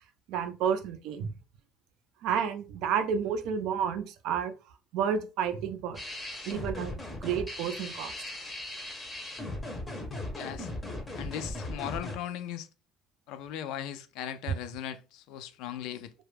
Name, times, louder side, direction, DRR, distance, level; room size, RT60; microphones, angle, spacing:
voice 1, 0.3-1.3 2.2-4.5 4.9-6.0 6.5-8.1, right 7 dB, 70° right, 0.4 m, -30 dB
sound 1, 5.9-12.2, left 1 dB, 15° left, 0.6 m, -38 dB
voice 2, 10.3-10.7 11.1-12.7 13.3-16.1, left 10 dB, 75° left, 0.3 m, -38 dB
2.2 x 2.0 x 3.1 m
cardioid pair, 150°, 0 cm